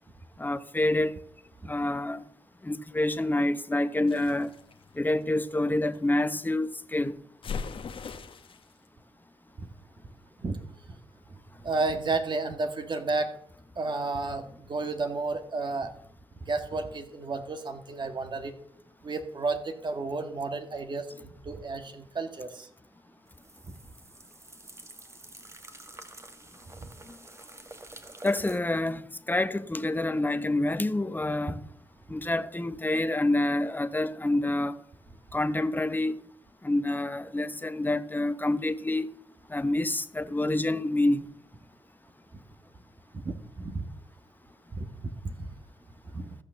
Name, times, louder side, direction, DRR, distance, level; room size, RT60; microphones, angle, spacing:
voice 1, 0.4-1.1 1.6-2.2 2.6-4.5 5.0-7.2 28.2-31.6 32.1-34.8 35.3-36.1 36.6-39.1 39.5-41.2, left 1 dB, 20° left, 1.0 m, -27 dB
sound 1, 4.1-6.0 7.4-8.7, left 5 dB, 60° left, 1.2 m, -39 dB
voice 2, 11.6-13.3 13.8-15.9 16.5-18.5 19.0-22.7 23.6-23.7 26.8-26.9 43.1-43.9 44.7-45.5 46.1-46.3, right 3 dB, 50° right, 1.8 m, -32 dB
sound 2, 23.3-28.6, right 2 dB, 25° right, 1.8 m, -48 dB
14.0 x 6.6 x 6.8 m
supercardioid pair, 45°, 10 cm